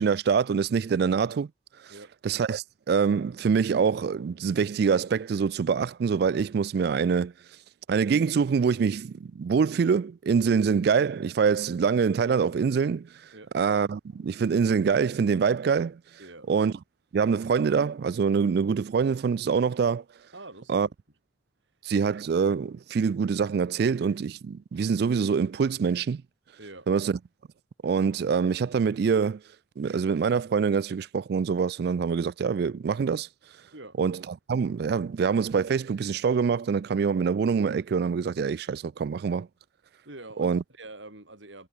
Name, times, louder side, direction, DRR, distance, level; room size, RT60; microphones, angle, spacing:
voice 1, 0.0-1.5 2.2-7.3 7.9-13.1 13.5-16.0 16.5-16.7 17.1-20.0 20.7-20.9 21.8-26.2 26.9-27.2 27.8-29.4 29.8-33.3 34.0-39.5 40.4-40.6, right 6 dB, 55° right, 0.3 m, -25 dB
voice 2, 16.2-16.6 20.3-20.9 26.6-26.9 33.7-34.0 40.1-41.7, right 2 dB, 70° right, 5.5 m, -45 dB
head